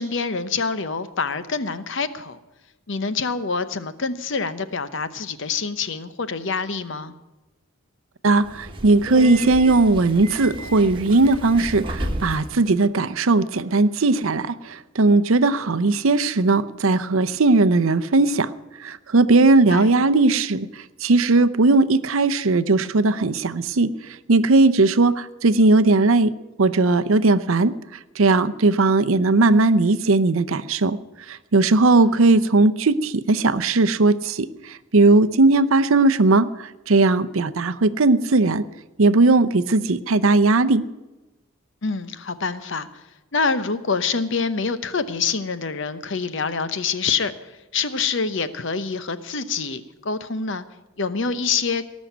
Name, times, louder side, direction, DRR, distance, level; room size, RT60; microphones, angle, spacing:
voice 1, 0.0-2.4 2.9-7.1 19.7-19.9 41.8-42.9 43.3-47.3 47.7-50.6 51.0-51.8, left 5 dB, 60° left, 13 dB, 0.9 m, -26 dB
voice 2, 8.2-18.5 18.8-23.9 24.3-26.3 26.6-27.7 28.2-31.0 31.3-38.7 39.0-40.8, right 3 dB, 70° right, 14 dB, 0.7 m, -18 dB
Subway metro underground, 8.4-12.6, right 1 dB, 25° right, 1.4 m, -32 dB
19.0 x 6.4 x 9.3 m, 1.1 s
head